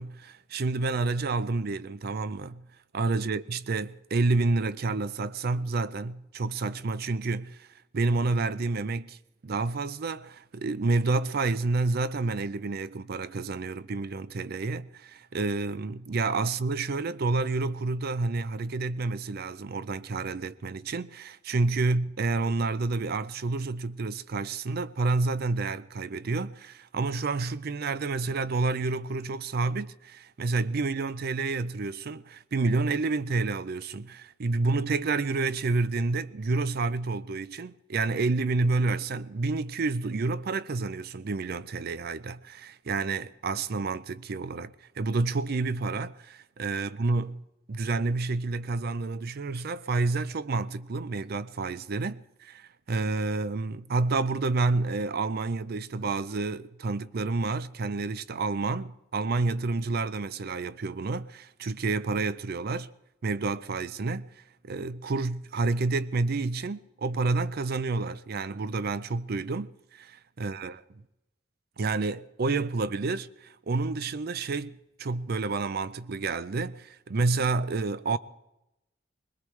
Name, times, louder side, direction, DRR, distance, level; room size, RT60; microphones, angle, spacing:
voice 1, 0.0-2.7 2.9-7.7 7.9-9.2 9.4-62.9 63.2-64.3 64.6-71.0 71.8-78.2, right 3 dB, 55° right, 0.5 m, -29 dB
21.5 x 20.5 x 3.2 m
head